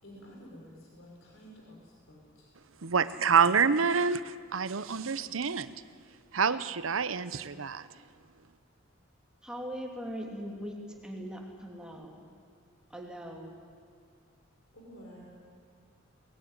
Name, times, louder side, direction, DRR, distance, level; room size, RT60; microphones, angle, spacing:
voice 1, 0.0-2.5 14.7-15.3, equal, 75° left, -2 dB, 4.9 m, -51 dB
voice 2, 2.8-5.7 6.3-7.8, right 6 dB, 90° right, 14 dB, 0.8 m, -27 dB
voice 3, 9.4-12.2 12.9-13.6, equal, 5° right, 0 dB, 2.8 m, -40 dB
21.0 x 19.5 x 9.8 m, 2.2 s
head